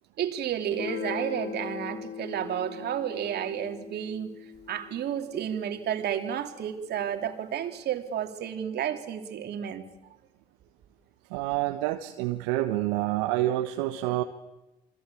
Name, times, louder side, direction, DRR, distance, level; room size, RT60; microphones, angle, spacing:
voice 1, 0.2-4.3 4.7-9.8, right 9 dB, 60° right, 6 dB, 3.1 m, -31 dB
Guitar, 0.7-6.2, left 7 dB, 60° left, 2.2 m, -40 dB
voice 2, 11.3-14.2, right 15 dB, 75° right, 6 dB, 1.4 m, -28 dB
28.5 x 24.5 x 8.5 m, 0.99 s
hypercardioid pair, 55°, 19 cm